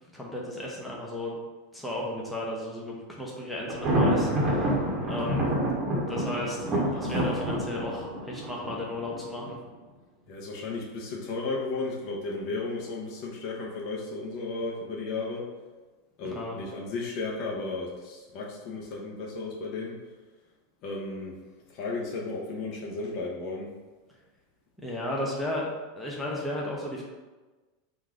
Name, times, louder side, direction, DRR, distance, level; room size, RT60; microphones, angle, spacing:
voice 1, 0.1-1.4 1.7-5.5 6.0-6.6 6.9-9.6 16.2-16.6 24.8-25.7 26.0-27.0, left 1 dB, ahead, -5 dB, 0.7 m, -34 dB
Thunder, 3.7-9.5, right 1 dB, 25° right, 0.9 m, -28 dB
voice 2, 6.4-7.1 10.3-15.5 16.2-20.1 20.8-21.4 21.7-23.7, left 3 dB, 40° left, -3 dB, 0.8 m, -34 dB
3.8 x 2.5 x 4.6 m, 1.2 s
supercardioid pair, 160°, 0 cm